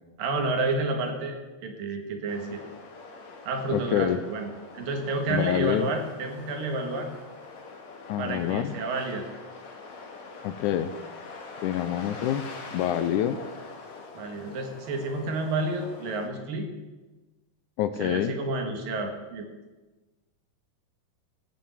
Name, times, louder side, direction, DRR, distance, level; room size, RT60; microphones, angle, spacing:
voice 1, 0.2-1.4 1.6-2.6 3.5-4.5 4.7-7.1 8.2-9.2 14.2-16.7 18.0-19.5, right 2 dB, 90° right, 4 dB, 3.5 m, -30 dB
sound 1, 2.3-16.3, left 4 dB, 60° left, 2.9 m, -44 dB
voice 2, 3.7-4.2 5.3-5.9 8.1-8.8 10.4-10.9 11.6-12.4 12.7-13.4 17.8-18.3, left 11 dB, 75° left, 10 dB, 1.9 m, -26 dB
17.0 x 6.5 x 8.4 m, 1.2 s
omnidirectional pair, 3.8 m